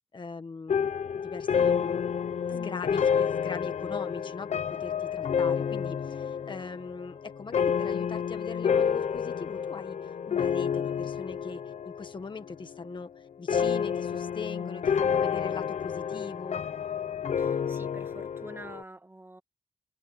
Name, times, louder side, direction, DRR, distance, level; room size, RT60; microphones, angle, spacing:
voice 1, 0.1-2.2 2.5-13.1 13.4-16.6, left 4 dB, 35° left, 1.5 m, -41 dB
sound 1, 0.7-12.2 12.4-13.0 13.5-18.8, left 7 dB, 55° left, 0.8 m, -29 dB
voice 2, 2.5-2.8 17.4-19.4, right 2 dB, 15° right, 1.9 m, -46 dB
wide cardioid pair, 155°, 14 cm